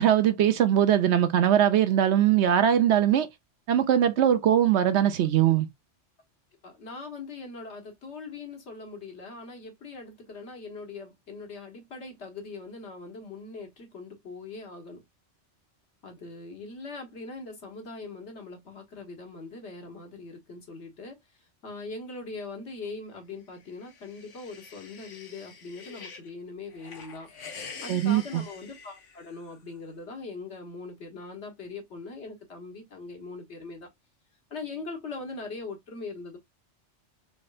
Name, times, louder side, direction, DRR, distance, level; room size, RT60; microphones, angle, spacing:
voice 1, 0.0-3.3 3.7-5.7 27.9-28.2, right 10 dB, 70° right, 0.9 m, -21 dB
voice 2, 6.6-15.0 16.0-27.3 27.8-33.9 34.5-36.4, left 3 dB, 65° left, 1.6 m, -41 dB
sound 1, 23.6-26.3 26.7-29.6, left 5 dB, 85° left, 1.2 m, -46 dB
4.4 x 3.2 x 2.4 m
omnidirectional pair, 1.2 m